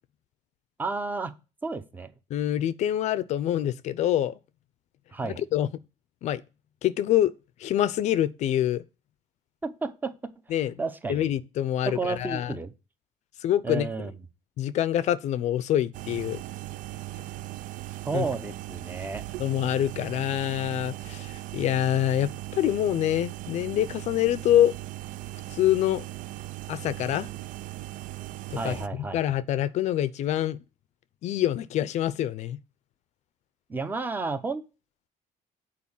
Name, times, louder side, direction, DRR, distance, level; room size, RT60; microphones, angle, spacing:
voice 1, 0.8-1.3 1.6-2.1 5.1-5.4 9.6-10.2 10.8-11.3 11.8-12.7 13.6-14.2 18.0-19.2 28.5-29.2 33.7-34.6, right 4 dB, 15° right, 0.7 m, -31 dB
voice 2, 2.3-4.3 5.2-5.7 6.2-6.4 6.8-7.3 7.6-8.8 10.5-10.7 11.1-12.5 13.4-13.9 14.6-16.4 18.1-18.2 19.4-24.7 25.5-26.0 26.7-27.3 28.5-28.8 29.1-30.6 31.2-32.6, left 12 dB, 55° left, 0.5 m, -25 dB
sound 1, 15.9-28.9, right 17 dB, 65° right, 0.5 m, -38 dB
8.5 x 4.7 x 7.1 m
cardioid pair, 175°, 14 cm